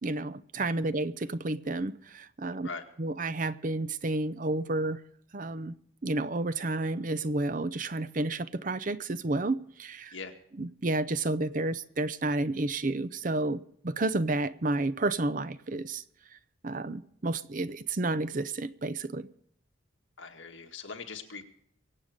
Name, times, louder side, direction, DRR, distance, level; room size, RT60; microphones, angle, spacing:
voice 1, 0.0-2.7 3.0-5.0 5.3-5.7 6.0-10.1 10.6-16.0 16.6-19.3, right 2 dB, 40° right, 0.6 m, -31 dB
voice 2, 20.2-21.4, left 4 dB, 65° left, 1.9 m, -41 dB
24.0 x 8.1 x 5.1 m
head